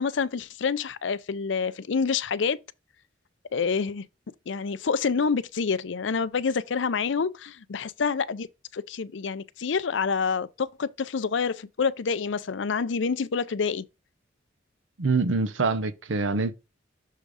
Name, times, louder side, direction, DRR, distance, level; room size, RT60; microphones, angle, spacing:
voice 1, 0.0-2.6 3.5-4.1 4.5-8.5 8.7-13.9, left 5 dB, 70° left, 0.5 m, -27 dB
voice 2, 15.0-16.5, right 3 dB, 90° right, 0.7 m, -25 dB
6.6 x 3.6 x 4.7 m
head